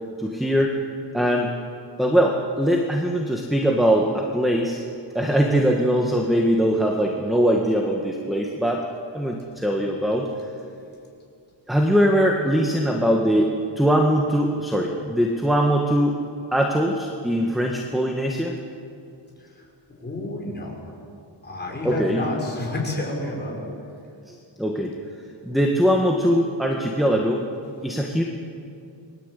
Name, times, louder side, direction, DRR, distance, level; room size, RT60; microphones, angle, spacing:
voice 1, 0.2-0.8 1.1-1.5 2.0-4.8 5.2-8.9 9.1-10.3 11.7-16.2 16.5-18.6 21.8-22.3 24.3-24.9 25.5-27.4 27.8-28.2, equal, ahead, 1 dB, 1.8 m, -21 dB
voice 2, 20.0-20.8 21.4-23.7, left 2 dB, 20° left, -2 dB, 6.5 m, -29 dB
29.5 x 22.5 x 8.5 m, 2.5 s
wide cardioid pair, 165°, 46 cm